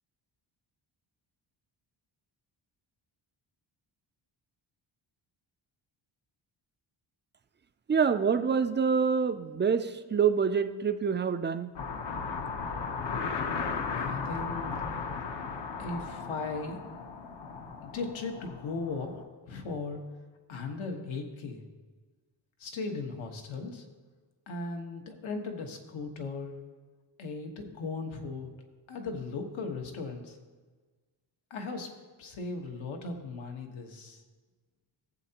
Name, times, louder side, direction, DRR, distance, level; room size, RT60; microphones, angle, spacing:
voice 1, 7.9-11.7, right 6 dB, 25° right, 9 dB, 0.3 m, -26 dB
sound 1, 11.8-19.2, left 5 dB, 60° left, 1.0 m, -36 dB
voice 2, 14.0-14.8 15.8-16.8 17.8-20.0 20.5-21.6 22.6-23.8 24.5-26.6 27.2-28.5 28.9-30.4 31.5-31.9 32.2-34.2, left 3 dB, 80° left, 3 dB, 1.4 m, -37 dB
16.0 x 7.7 x 2.9 m, 1.4 s
wide cardioid pair, 130°, 47 cm